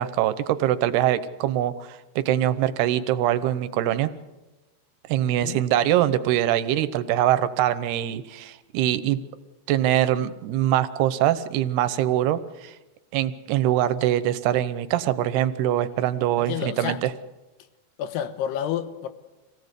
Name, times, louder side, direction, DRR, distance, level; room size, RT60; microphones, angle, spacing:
voice 1, 0.0-4.1 5.1-9.2 9.7-12.7 13.1-17.1, right 12 dB, 75° right, 2.7 m, -23 dB
voice 2, 5.2-5.6 16.4-17.0 18.0-19.1, left 10 dB, 75° left, 3.2 m, -30 dB
26.0 x 17.0 x 8.2 m
omnidirectional pair, 5.0 m